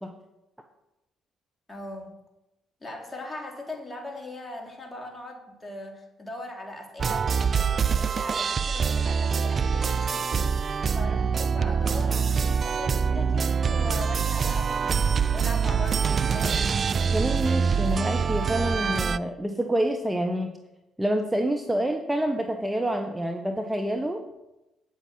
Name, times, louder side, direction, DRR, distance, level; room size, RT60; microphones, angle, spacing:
voice 1, 1.7-2.1 2.8-16.9, left 1 dB, 20° left, 1 dB, 3.3 m, -40 dB
sound 1, 7.0-19.2, right 6 dB, 45° right, 0.4 m, -25 dB
voice 2, 17.1-20.5 21.0-24.2, right 1 dB, 10° right, 4 dB, 1.2 m, -27 dB
9.2 x 8.4 x 5.9 m, 0.94 s
hypercardioid pair, 50°, 0 cm